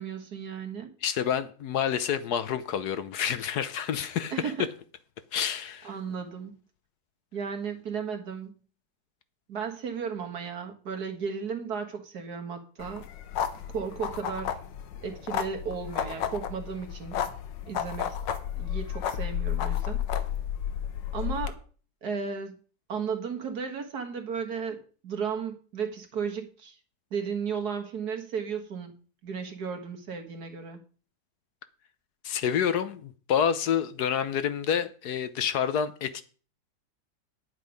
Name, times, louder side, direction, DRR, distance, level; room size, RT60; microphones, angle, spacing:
voice 1, 0.0-0.9 4.3-4.7 5.8-6.6 7.3-8.6 9.5-13.1 13.7-14.6 15.0-17.2 17.7-18.2 18.6-20.0 21.1-21.6 22.0-22.6 22.9-26.8 27.1-28.9 29.2-30.8, right 6 dB, 60° right, 2.1 m, -34 dB
voice 2, 1.0-4.3 5.3-5.9 32.2-36.2, left 8 dB, 65° left, 1.3 m, -28 dB
sound 1, 12.8-21.5, left 9 dB, 90° left, 1.6 m, -32 dB
10.0 x 8.4 x 5.2 m
omnidirectional pair, 1.9 m